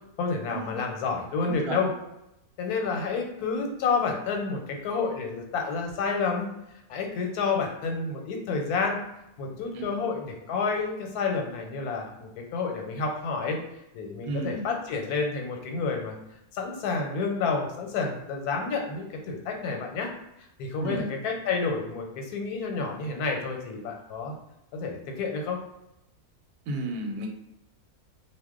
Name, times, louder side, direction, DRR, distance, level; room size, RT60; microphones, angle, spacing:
voice 1, 0.2-1.9 2.6-6.5 6.9-9.0 9.4-13.6 13.9-16.2 16.5-20.1 20.6-24.3 24.7-25.6, left 4 dB, 90° left, 2 dB, 1.1 m, -29 dB
voice 2, 1.4-1.8 9.7-9.9 14.2-14.6 20.8-21.1 26.7-27.3, right 2 dB, 90° right, 3 dB, 1.1 m, -33 dB
2.4 x 2.1 x 3.6 m, 0.87 s
omnidirectional pair, 1.6 m